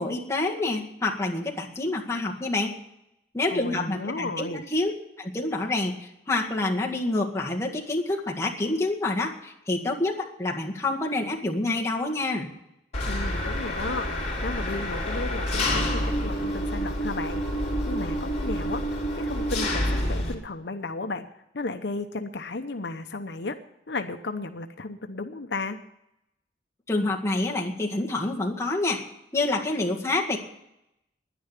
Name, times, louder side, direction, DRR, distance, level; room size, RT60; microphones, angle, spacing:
voice 1, 0.0-2.8 3.3-4.9 5.2-12.5 26.9-29.0 29.3-30.4, left 2 dB, 15° left, -2 dB, 1.9 m, -27 dB
voice 2, 3.5-4.6 13.1-14.1 14.4-17.4 17.9-18.8 19.1-21.3 21.5-23.6 23.9-25.8, left 3 dB, 70° left, 7 dB, 0.8 m, -34 dB
Engine, 12.9-20.3, equal, 40° left, 3.4 m, -28 dB
10.5 x 10.0 x 9.8 m, 0.82 s
head